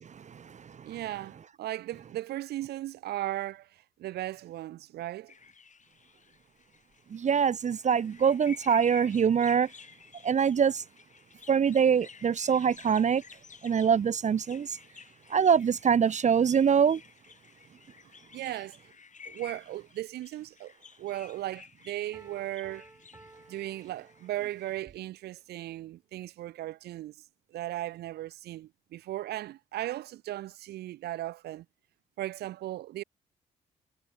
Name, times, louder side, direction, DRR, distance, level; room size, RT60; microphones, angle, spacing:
voice 1, 0.0-1.0 7.1-9.7 10.2-10.8 11.5-13.2 13.6-14.8 15.3-17.0, right 7 dB, 45° right, 0.8 m, -24 dB
voice 2, 0.8-5.3 18.3-18.8 19.3-20.7 21.0-22.9 23.5-27.1 27.5-31.7 32.2-33.0, right 14 dB, 75° right, 2.3 m, -37 dB
sound 1, 5.3-24.8, left 6 dB, 45° left, 5.6 m, -53 dB
Piano, 22.1-24.7, right 2 dB, 15° right, 6.2 m, -56 dB
supercardioid pair, 50°, 17 cm